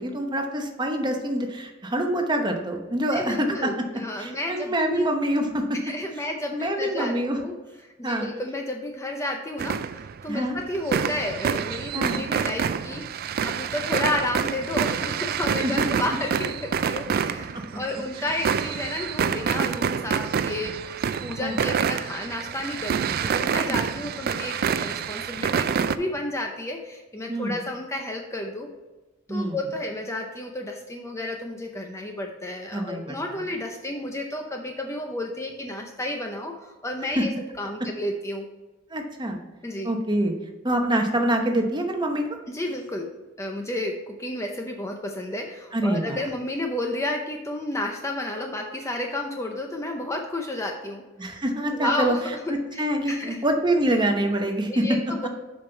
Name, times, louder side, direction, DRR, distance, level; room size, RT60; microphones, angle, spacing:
voice 1, 0.0-3.7 4.2-5.6 6.5-7.4 8.0-8.3 10.3-10.6 11.9-12.2 15.6-15.9 17.5-17.6 17.9-18.0 21.4-21.6 27.3-27.6 29.3-29.6 32.7-33.2 37.2-37.3 38.9-39.4 39.8-40.3 40.6-42.3 45.7-46.2 51.2-52.2 52.8-54.9, right 1 dB, 20° right, 3 dB, 0.9 m, -25 dB
voice 2, 3.1-5.1 5.8-7.6 7.8-13.1 13.4-28.7 29.3-38.5 39.6-39.9 42.5-51.0 51.7-52.4 52.7-53.4 54.7-55.3, left 1 dB, 15° left, 2 dB, 0.6 m, -31 dB
sound 1, 9.6-10.3 10.6-26.0, right 7 dB, 45° right, 0.3 m, -27 dB
7.3 x 5.3 x 4.4 m, 1.2 s
head